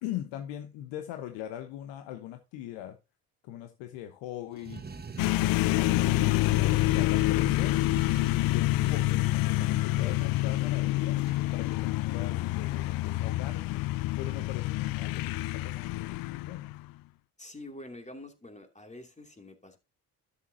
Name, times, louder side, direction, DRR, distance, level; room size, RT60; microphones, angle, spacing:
voice 1, 0.0-3.0 3.4-4.8 5.5-7.8 8.2-11.2 11.5-13.8 14.2-16.8, left 12 dB, 65° left, 1.2 m, -41 dB
sound 1, 4.5-11.9, right 5 dB, 20° right, 1.2 m, -44 dB
sound 2, 5.2-16.9, left 18 dB, 50° left, 0.4 m, -27 dB
voice 2, 17.4-19.8, left 1 dB, 15° left, 2.6 m, -46 dB
12.5 x 7.2 x 2.8 m
hypercardioid pair, 50°, 47 cm